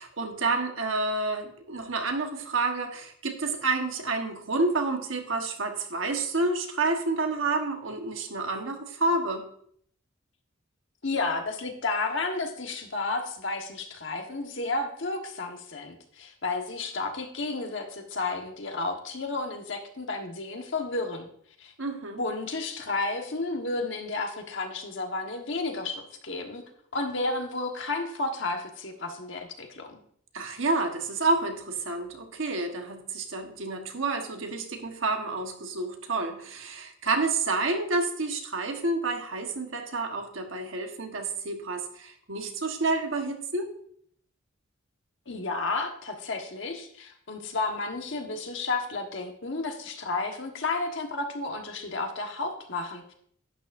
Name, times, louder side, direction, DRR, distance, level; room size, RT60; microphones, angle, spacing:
voice 1, 0.0-9.4 21.8-22.2 30.3-43.7, right 3 dB, 70° right, 4 dB, 1.3 m, -29 dB
voice 2, 11.0-21.3 21.6-21.7 22.2-26.6 26.9-30.0 45.3-53.1, left 3 dB, 65° left, 4 dB, 1.3 m, -32 dB
11.5 x 9.3 x 2.6 m, 0.64 s
head